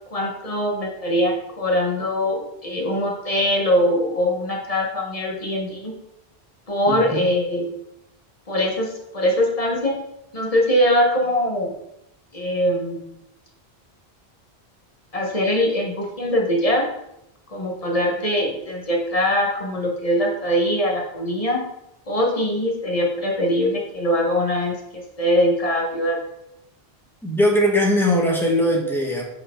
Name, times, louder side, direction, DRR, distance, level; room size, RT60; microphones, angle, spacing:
voice 1, 0.1-5.9 6.7-7.7 8.5-10.0 10.3-11.7 12.3-13.0 15.1-16.9 17.5-21.7 22.1-26.2, equal, 35° left, -1 dB, 1.3 m, -22 dB
voice 2, 6.9-7.3 27.2-29.2, left 1 dB, ahead, -1 dB, 1.2 m, -20 dB
5.5 x 4.8 x 4.4 m, 0.84 s
omnidirectional pair, 1.1 m